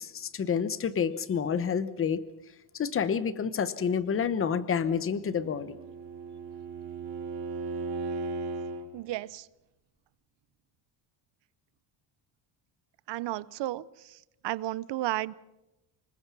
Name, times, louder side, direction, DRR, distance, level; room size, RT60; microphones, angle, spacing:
voice 1, 0.0-2.2 2.7-5.8, left 7 dB, 30° left, 15 dB, 0.9 m, -29 dB
Bowed string instrument, 5.2-8.9, right 3 dB, 85° right, 3.7 m, -36 dB
voice 2, 8.9-9.4 13.1-13.8 14.4-15.3, right 16 dB, 65° right, 20 dB, 0.7 m, -32 dB
25.5 x 21.5 x 6.0 m, 0.94 s
cardioid pair, 160°, 45 cm